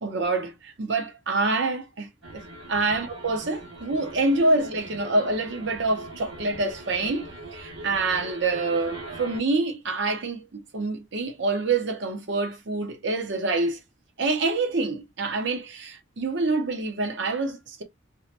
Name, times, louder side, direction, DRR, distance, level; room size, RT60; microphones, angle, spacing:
voice 1, 0.0-2.4 2.7-13.8 14.2-17.8, right 3 dB, 60° right, 0.7 m, -26 dB
sound 1, 2.2-9.4, right 2 dB, 80° right, 1.3 m, -41 dB
2.7 x 2.2 x 2.4 m
head